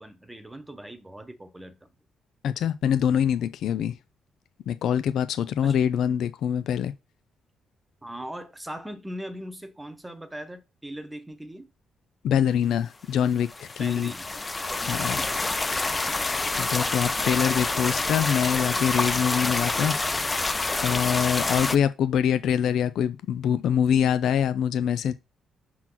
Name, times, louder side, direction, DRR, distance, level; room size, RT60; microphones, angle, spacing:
voice 1, 0.0-1.9 5.6-5.8 8.0-11.7 13.8-14.3 14.7-15.6 21.5-21.7, right 1 dB, 10° right, 1.0 m, -40 dB
voice 2, 2.4-4.0 4.7-6.9 12.2-14.1 14.8-15.2 16.6-20.0 20.8-25.1, left 8 dB, 75° left, 0.4 m, -24 dB
sound 1, 13.4-21.8, left 3 dB, 20° left, 0.5 m, -27 dB
6.0 x 3.8 x 5.9 m
cardioid pair, 90°, 0 cm